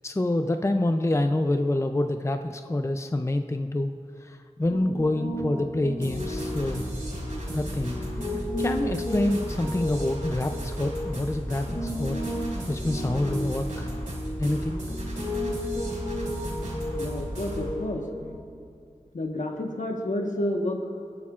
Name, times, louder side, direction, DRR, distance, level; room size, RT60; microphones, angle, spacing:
voice 1, 0.0-3.9 4.2-6.9 7.5-8.0 8.3-12.2 12.7-13.9 14.4-14.8, left 1 dB, 20° left, 7 dB, 0.5 m, -27 dB
Piano, 4.7-18.4, equal, 50° left, 1.6 m, -34 dB
sound 1, 6.0-17.7, equal, 75° right, 3.1 m, -35 dB
voice 2, 16.9-18.0 19.1-20.9, left 1 dB, 75° left, 2 dB, 1.3 m, -30 dB
24.0 x 8.7 x 2.5 m, 2.4 s
wide cardioid pair, 40°, 13 cm